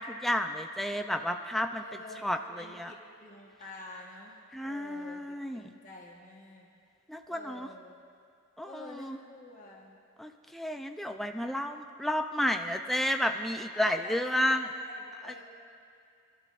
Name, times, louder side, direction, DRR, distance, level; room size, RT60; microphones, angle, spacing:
voice 1, 0.0-1.8 2.2-2.9 4.5-5.7 7.1-7.7 8.6-9.2 10.2-14.7 15.2-15.4, left 1 dB, ahead, 4 dB, 0.4 m, -31 dB
voice 2, 1.8-6.7 7.3-8.0 8.6-10.0 13.7-15.4, left 2 dB, 40° left, -3 dB, 1.2 m, -48 dB
24.5 x 12.0 x 2.5 m, 2.4 s
head